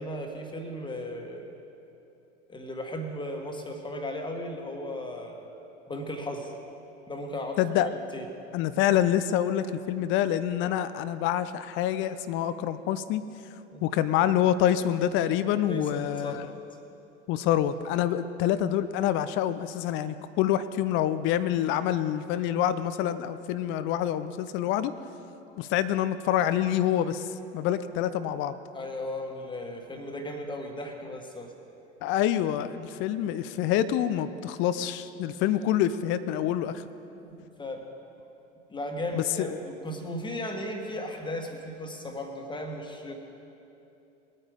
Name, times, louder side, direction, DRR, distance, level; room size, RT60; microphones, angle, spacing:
voice 1, 0.0-1.5 2.5-5.5 5.9-6.5 7.1-8.3 13.7-13.8 15.7-16.5 28.7-31.5 37.1-37.8 38.7-43.1, left 1 dB, 15° left, 3 dB, 1.6 m, -36 dB
voice 2, 7.6-7.9 8.5-13.2 13.8-16.5 17.3-24.9 25.6-28.5 32.0-36.8 39.1-39.6, left 11 dB, 35° left, 13 dB, 0.5 m, -26 dB
21.0 x 9.0 x 3.9 m, 2.8 s
figure-of-eight pair, 75°, 36 cm